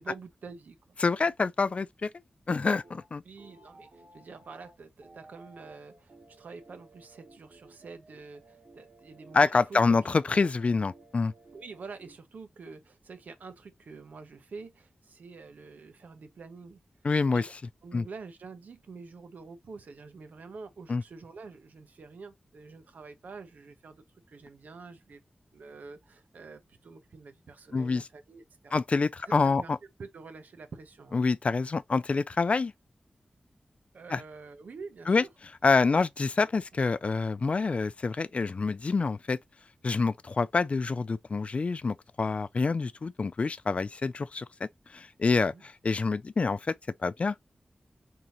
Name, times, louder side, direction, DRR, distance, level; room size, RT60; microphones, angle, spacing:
voice 1, 0.0-1.0 3.2-10.1 11.5-16.8 17.3-17.5 17.8-25.2 25.5-28.8 29.3-29.7 30.0-31.2 33.9-35.3 35.9-36.0 45.5-45.6, right 4 dB, 85° right, 0.8 m, -47 dB
voice 2, 1.0-2.1 2.5-3.2 9.3-11.3 17.0-17.5 17.9-18.1 20.9-21.0 27.7-28.1 28.7-29.8 31.1-32.7 34.1-34.2 35.1-35.2 35.6-39.4 39.8-46.7 47.0-47.4, left 4 dB, 50° left, 0.3 m, -27 dB
sound 1, 2.6-3.1 3.4-12.2, right 2 dB, 55° right, 1.1 m, -56 dB
4.0 x 3.7 x 2.8 m
wide cardioid pair, 90°, 3 cm